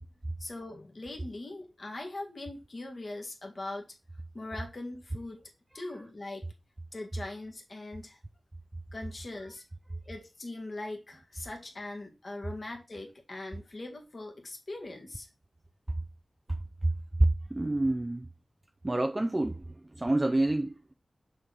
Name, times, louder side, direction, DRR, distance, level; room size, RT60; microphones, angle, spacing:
voice 1, 0.4-3.9 4.3-5.4 5.7-6.4 6.9-8.2 8.9-9.6 10.1-15.3, left 2 dB, 50° left, 1.9 m, -41 dB
voice 2, 17.2-18.3 18.8-20.7, right 2 dB, 25° right, 0.5 m, -27 dB
6.6 x 4.0 x 6.3 m
wide cardioid pair, 90°, 0 cm